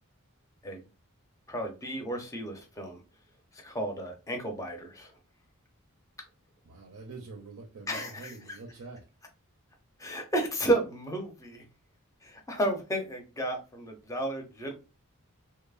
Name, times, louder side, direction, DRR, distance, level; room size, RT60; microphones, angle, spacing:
voice 1, 1.5-3.0 3.5-5.1 7.9-8.6 10.0-11.6 12.2-14.7, right 1 dB, 15° left, 2 dB, 0.5 m, -32 dB
voice 2, 6.6-9.1, right 3 dB, 70° right, 2 dB, 0.5 m, -45 dB
2.9 x 2.0 x 2.3 m, 0.30 s
head